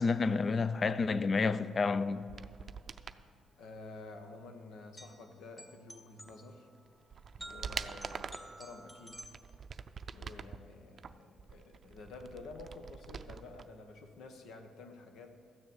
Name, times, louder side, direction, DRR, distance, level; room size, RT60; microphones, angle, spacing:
voice 1, 0.0-2.3, left 4 dB, 40° left, 0.5 m, -30 dB
sound 1, 2.2-3.2 6.3-6.4 6.9-8.5 9.1-10.6 11.0-13.7 13.9-14.0, right 6 dB, 45° right, 0.5 m, -45 dB
sound 2, 2.9-9.3, right 1 dB, 10° left, 1.6 m, -52 dB
voice 2, 3.6-6.7 7.4-9.3 10.1-15.5, left 3 dB, 80° left, 1.3 m, -50 dB
13.5 x 6.7 x 8.6 m
cardioid pair, 90°, 0 cm